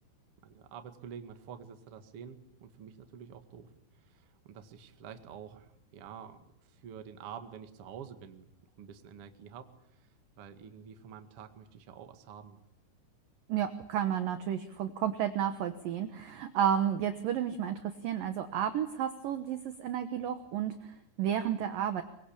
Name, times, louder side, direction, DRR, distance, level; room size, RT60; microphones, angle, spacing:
voice 1, 0.4-3.7 4.1-8.5 8.8-9.7 10.4-12.6, right 8 dB, 65° right, 8 dB, 1.4 m, -48 dB
voice 2, 13.5-22.0, right 9 dB, 80° right, 9 dB, 2.0 m, -32 dB
23.5 x 23.0 x 8.6 m, 0.77 s
omnidirectional pair, 5.7 m